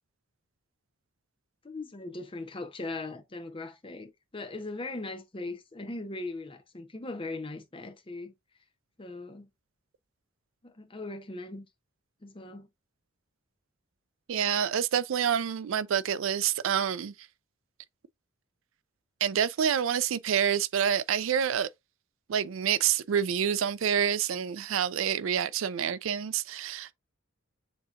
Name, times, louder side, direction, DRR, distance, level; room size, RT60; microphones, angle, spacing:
voice 1, 1.6-8.3 9.0-9.5 10.6-11.7 12.2-12.7, left 2 dB, 25° left, 0.7 m, -39 dB
voice 2, 14.3-17.1 19.2-21.7 22.3-26.9, right 8 dB, 65° right, 0.4 m, -27 dB
7.0 x 2.8 x 2.5 m
head